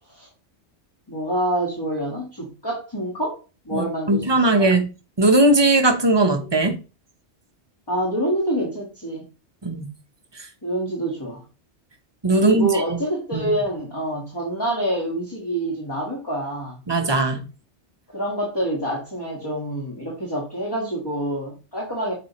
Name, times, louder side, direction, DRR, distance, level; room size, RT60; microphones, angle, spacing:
voice 1, 1.1-3.4 3.6-4.8 7.9-9.3 10.6-11.4 12.4-16.8 18.1-22.1, right 1 dB, 20° left, 1.5 m, -26 dB
voice 2, 3.7-4.9 5.2-6.7 9.6-9.9 12.2-13.0 13.3-13.5 16.9-17.4, right 2 dB, 25° right, 0.8 m, -19 dB
7.5 x 4.2 x 3.0 m
omnidirectional pair, 1.2 m